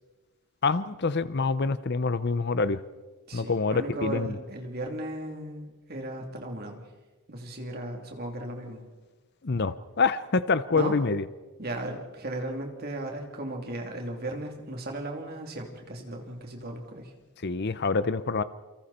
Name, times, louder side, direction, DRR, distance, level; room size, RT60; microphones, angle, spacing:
voice 1, 0.6-2.8 3.3-4.4 9.4-11.3 17.4-18.4, left 4 dB, 50° left, 15 dB, 0.7 m, -26 dB
voice 2, 3.3-6.8 7.3-8.8 10.7-10.9 11.6-17.1, right 1 dB, 45° right, 2 dB, 3.1 m, -36 dB
28.5 x 25.0 x 4.4 m, 1.2 s
head